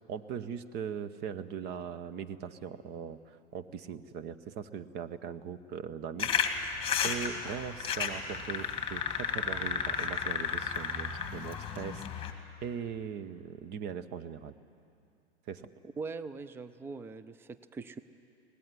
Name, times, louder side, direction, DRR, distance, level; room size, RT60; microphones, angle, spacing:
voice 1, 0.1-6.3 7.0-12.0 12.6-14.5 15.5-15.6, right 7 dB, 30° right, 12 dB, 1.0 m, -40 dB
sound 1, 6.2-12.3, left 7 dB, 15° left, 2.1 m, -33 dB
voice 2, 15.8-18.0, right 4 dB, 5° right, 13 dB, 0.5 m, -41 dB
23.5 x 18.5 x 9.8 m, 2.5 s
figure-of-eight pair, 105°, 35 cm